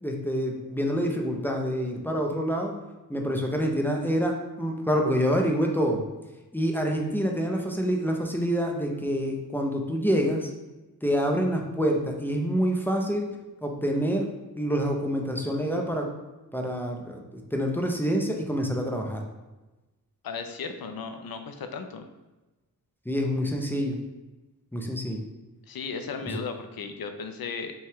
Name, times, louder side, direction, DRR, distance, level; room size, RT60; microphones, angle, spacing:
voice 1, 0.0-2.7 3.1-6.0 6.5-10.5 11.0-13.3 13.6-14.3 14.6-16.1 16.5-17.2 17.5-19.2 23.1-24.0 24.7-25.3 26.3-26.4, equal, 5° left, 1 dB, 0.5 m, -27 dB
voice 2, 20.2-22.0 25.7-27.7, left 5 dB, 70° left, 7 dB, 0.5 m, -35 dB
5.4 x 2.3 x 3.5 m, 1.1 s
wide cardioid pair, 100°, 38 cm